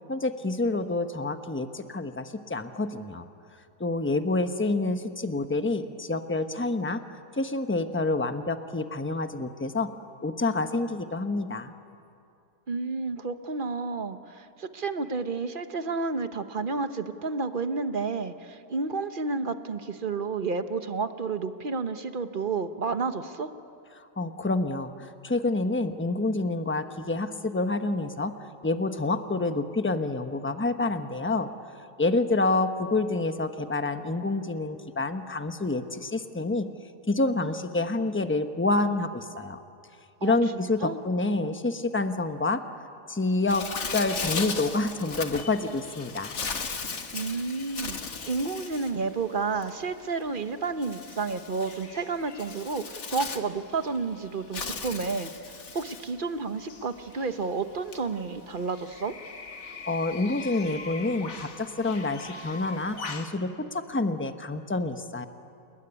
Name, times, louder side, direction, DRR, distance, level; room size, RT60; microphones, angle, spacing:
voice 1, 0.1-3.3 3.8-7.0 7.4-9.9 10.2-11.7 24.2-28.3 28.6-31.5 32.0-36.7 37.1-39.6 40.2-42.6 43.1-43.7 43.9-46.3 59.9-65.3, left 2 dB, 10° left, 8 dB, 0.8 m, -28 dB
voice 2, 12.7-23.5 40.2-40.4 40.8-41.0 47.1-48.0 48.3-59.1, right 4 dB, 35° right, 9 dB, 1.1 m, -31 dB
Bird, 43.5-63.4, left 4 dB, 50° left, 1.7 m, -38 dB
29.5 x 20.0 x 10.0 m, 2.6 s
omnidirectional pair, 1.7 m